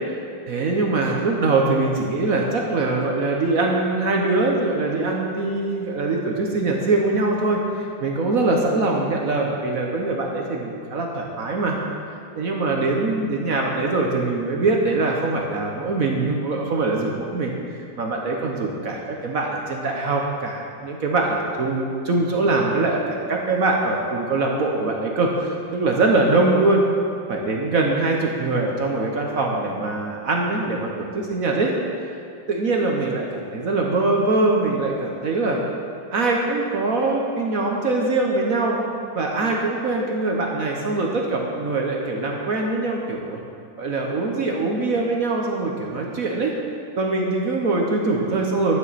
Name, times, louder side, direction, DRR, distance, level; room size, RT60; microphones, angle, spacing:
voice 1, 0.5-11.8 12.4-17.5 18.0-26.8 27.3-31.7 32.5-35.6 36.1-38.8 39.1-43.4 43.8-46.5 47.0-48.8, right 3 dB, 55° right, 0 dB, 1.1 m, -23 dB
11.5 x 9.3 x 4.1 m, 2.4 s
omnidirectional pair, 2.3 m